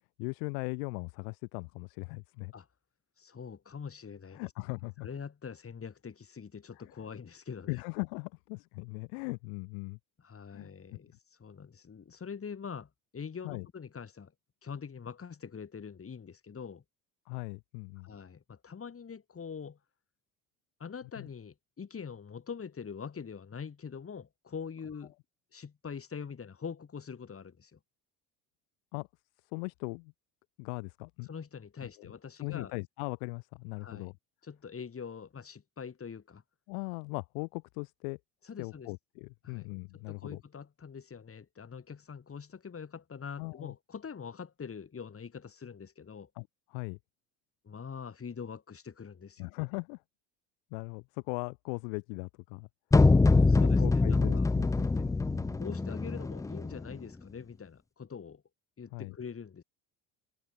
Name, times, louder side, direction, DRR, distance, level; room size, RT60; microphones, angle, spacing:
voice 1, 0.2-2.5 4.3-5.1 6.8-6.9 7.7-10.0 10.5-10.7 13.4-13.7 17.3-18.1 21.2-21.3 28.9-29.1 29.4-30.1 30.6-31.3 32.0-32.1 32.4-34.1 36.7-38.2 38.6-40.4 43.4-43.7 46.3-47.0 49.4-50.0 50.7-52.7 53.5-55.6 58.9-59.1, left 40 dB or more, 80° left, 1.7 m, -39 dB
voice 2, 3.2-4.5 5.0-7.7 10.2-11.1 11.4-14.3 14.6-16.8 18.0-19.8 20.8-25.1 25.5-27.8 31.3-32.7 33.8-34.1 34.4-36.4 38.5-38.9 39.4-39.7 39.9-46.3 47.6-49.5 53.3-54.5 55.5-58.4 58.8-59.6, left 6 dB, 30° left, 4.7 m, -44 dB
sound 1, 52.9-56.9, left 3 dB, 10° left, 0.4 m, -24 dB
hypercardioid pair, 75°, 42 cm